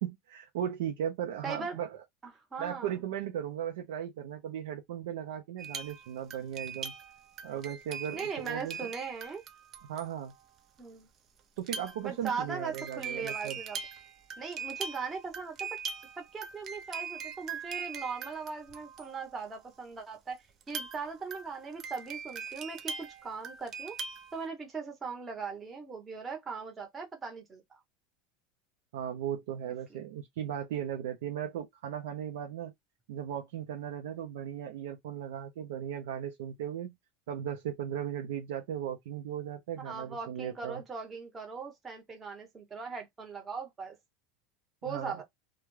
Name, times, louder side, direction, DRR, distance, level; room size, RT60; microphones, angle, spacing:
voice 1, 0.0-2.0 2.6-6.9 7.4-8.9 9.9-10.3 11.6-13.6 28.9-32.7 33.1-36.9 37.3-40.8 44.8-45.2, right 10 dB, 85° right, 0.6 m, -37 dB
voice 2, 1.4-1.8 2.5-2.9 8.1-9.4 10.8-11.1 12.0-13.8 14.4-15.7 16.2-24.0 24.3-27.8 29.9-30.0 39.8-44.0 44.8-45.2, right 5 dB, 20° right, 1.0 m, -39 dB
sound 1, 5.6-10.3 11.6-19.5 20.6-24.4, right 6 dB, 35° right, 0.6 m, -41 dB
2.3 x 2.2 x 3.1 m
supercardioid pair, 125°, 0 cm